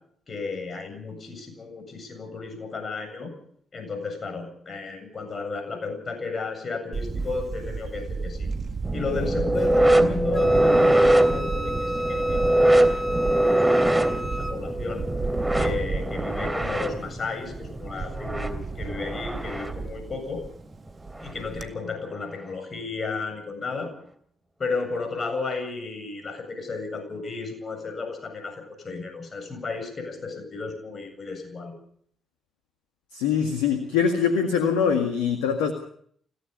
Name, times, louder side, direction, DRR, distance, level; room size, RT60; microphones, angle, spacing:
voice 1, 0.3-3.3 3.7-8.5 8.9-15.0 15.6-20.4 21.2-23.9 24.6-31.7, left 4 dB, 45° left, 8 dB, 7.5 m, -33 dB
Camera, 6.9-21.7, right 4 dB, 45° right, 1.9 m, -34 dB
sound 1, 8.8-19.8 21.1-21.3 22.2-22.3, right 1 dB, 10° right, 3.3 m, -23 dB
Wind instrument woodwind instrument, 10.3-14.6, equal, 20° left, 3.3 m, -34 dB
voice 2, 33.1-35.7, left 7 dB, 80° left, 6 dB, 2.0 m, -23 dB
29.0 x 16.5 x 5.4 m, 0.62 s
hypercardioid pair, 45°, 0 cm